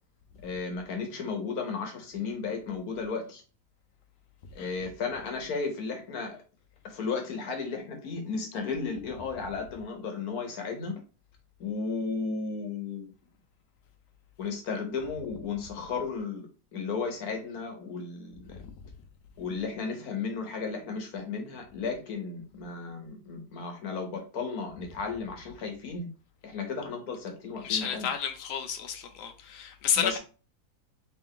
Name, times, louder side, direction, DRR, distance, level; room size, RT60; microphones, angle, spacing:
voice 1, 0.4-3.4 4.5-6.4 6.8-11.0 11.6-13.1 14.4-18.6 19.4-26.1 26.4-28.1 29.9-30.2, left 4 dB, 65° left, 1.4 m, -34 dB
voice 2, 27.6-30.2, left 8 dB, 90° left, 1.3 m, -31 dB
3.4 x 3.4 x 3.7 m
omnidirectional pair, 1.7 m